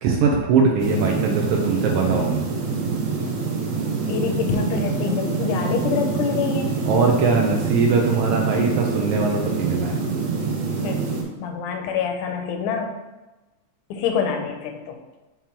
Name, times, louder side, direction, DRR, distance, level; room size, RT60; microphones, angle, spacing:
voice 1, 0.0-2.4 6.9-10.0, right 4 dB, 90° right, 0 dB, 1.3 m, -21 dB
sound 1, 0.8-11.2, right 4 dB, 70° right, 2.3 m, -26 dB
voice 2, 4.0-6.8 10.8-11.1 11.4-13.0 13.9-15.0, left 6 dB, 80° left, 5 dB, 1.9 m, -26 dB
6.1 x 3.8 x 4.4 m, 1.1 s
omnidirectional pair, 3.5 m